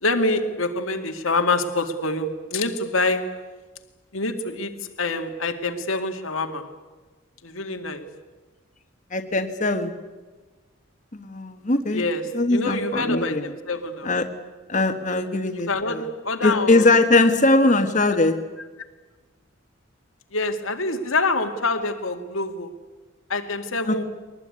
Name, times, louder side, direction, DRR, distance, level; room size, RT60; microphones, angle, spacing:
voice 1, 0.0-3.4 4.1-6.7 7.4-8.1 11.9-14.1 15.7-16.9 20.3-22.7 23.3-24.0, left 2 dB, 85° left, 5 dB, 2.2 m, -26 dB
voice 2, 9.1-9.9 11.1-12.0 12.3-13.4 14.0-14.3 14.7-16.0 16.4-18.3 23.9-24.0, left 2 dB, 35° left, 5 dB, 1.4 m, -20 dB
22.5 x 19.5 x 9.7 m, 1.3 s
head